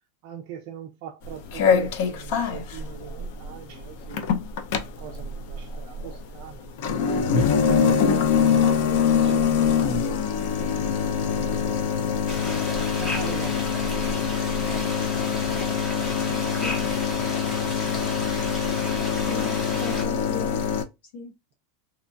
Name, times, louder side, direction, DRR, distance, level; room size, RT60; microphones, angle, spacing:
voice 1, 0.2-4.3 4.8-10.3 10.6-10.8 11.2-12.0 13.0-14.1 15.4-16.4 16.7-16.8 17.2-17.4 18.0-18.1, right 9 dB, 45° right, 0.4 m, -42 dB
sound 1, 1.2-20.8, left 7 dB, 50° left, 0.4 m, -24 dB
sound 2, 12.3-20.0, left 1 dB, 15° left, 0.7 m, -34 dB
voice 2, 16.2-16.8 19.3-20.6 21.1-21.3, left 3 dB, 90° left, 0.9 m, -37 dB
2.9 x 2.3 x 2.5 m
supercardioid pair, 170°, 0 cm